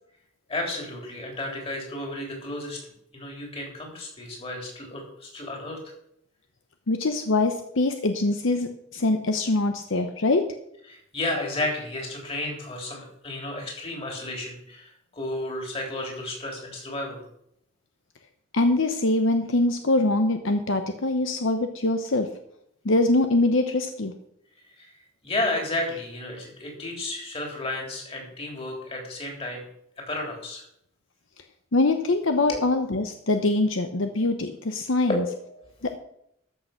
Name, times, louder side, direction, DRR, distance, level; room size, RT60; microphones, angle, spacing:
voice 1, 0.5-2.8 3.1-5.8 10.9-17.2 24.8-24.9 25.2-29.6 30.1-30.6 32.5-32.6 35.1-35.2, left 2 dB, 30° left, 0 dB, 3.6 m, -32 dB
voice 2, 6.9-10.4 18.5-22.3 22.8-24.1 31.7-35.2 35.8-35.9, left 2 dB, 70° left, 7 dB, 0.9 m, -23 dB
13.5 x 6.7 x 5.9 m, 0.73 s
head